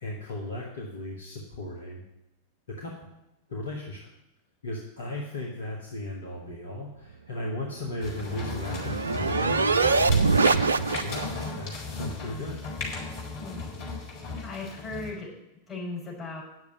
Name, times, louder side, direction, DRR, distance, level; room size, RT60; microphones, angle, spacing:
voice 1, 0.0-2.0 2.7-3.1 3.5-4.1 4.6-10.6 11.0-12.6, left 1 dB, 65° left, -1 dB, 1.8 m, -36 dB
sound 1, 7.9-11.5, right 4 dB, 75° right, 0.4 m, -24 dB
sound 2, 8.0-15.1, left 3 dB, 45° left, 4.2 m, -36 dB
voice 2, 14.4-16.4, left 3 dB, 15° left, -4 dB, 5.0 m, -37 dB
9.7 x 7.0 x 8.4 m, 0.89 s
figure-of-eight pair, 90°, 0 cm